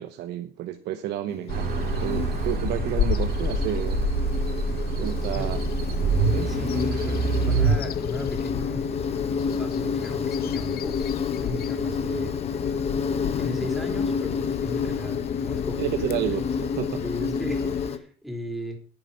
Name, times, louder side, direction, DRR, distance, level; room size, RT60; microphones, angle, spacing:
voice 1, 0.0-4.1 5.0-5.6 6.3-6.5 15.8-17.0, right 12 dB, 80° right, 1.0 m, -31 dB
Insect, 1.3-18.0, left 6 dB, 40° left, 1.2 m, -30 dB
Bird vocalization bird call bird song, 1.5-17.9, left 10 dB, 65° left, 0.8 m, -33 dB
sound 1, 1.5-7.8, right 5 dB, 65° right, 2.0 m, -26 dB
voice 2, 6.5-11.1 11.4-12.4 13.3-15.9 16.1-16.3 16.9-18.8, equal, ahead, 3.6 m, -36 dB
9.9 x 9.5 x 5.7 m
cardioid pair, 110°, 17 cm